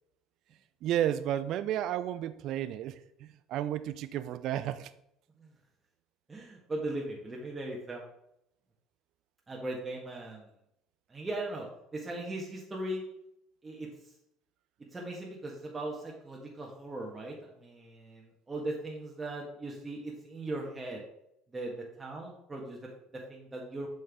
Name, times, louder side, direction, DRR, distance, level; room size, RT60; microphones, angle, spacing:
voice 1, 0.8-4.9, right 11 dB, 60° right, 14 dB, 0.5 m, -32 dB
voice 2, 6.3-8.0 9.5-10.5 11.1-11.7 11.9-13.0 13.6-13.9 14.9-21.0 21.5-23.9, right 2 dB, 20° right, -2 dB, 1.7 m, -39 dB
7.4 x 5.4 x 3.7 m, 0.79 s
hypercardioid pair, 65°, 0 cm